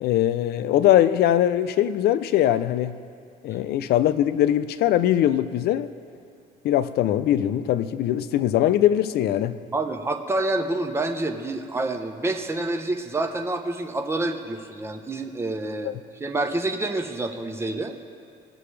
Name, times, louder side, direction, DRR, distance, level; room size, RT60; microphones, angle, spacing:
voice 1, 0.0-3.0 3.4-5.9 6.6-9.6 15.8-16.0, left 12 dB, 70° left, 14 dB, 0.5 m, -21 dB
voice 2, 9.7-17.9, right 2 dB, 15° right, 5 dB, 0.8 m, -27 dB
20.5 x 6.8 x 3.3 m, 2.4 s
cardioid pair, 110°, 17 cm